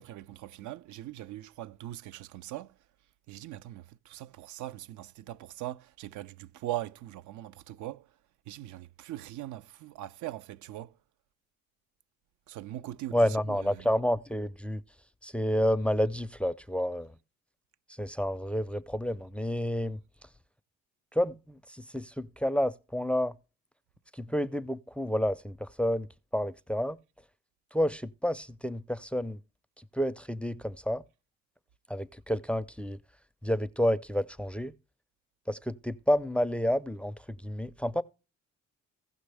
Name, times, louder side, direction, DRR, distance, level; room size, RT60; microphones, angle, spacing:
voice 1, 0.0-2.7 3.3-8.1 8.5-10.9 12.5-13.9, right 14 dB, 75° right, 0.5 m, -41 dB
voice 2, 13.1-14.8 15.2-17.1 18.0-20.0 21.1-23.3 24.2-26.1 26.3-27.0 27.7-29.4 29.9-31.0 31.9-33.0 33.4-34.7 35.5-38.0, equal, 5° left, 0.4 m, -29 dB
16.0 x 6.2 x 3.3 m
cardioid pair, 90°, 30 cm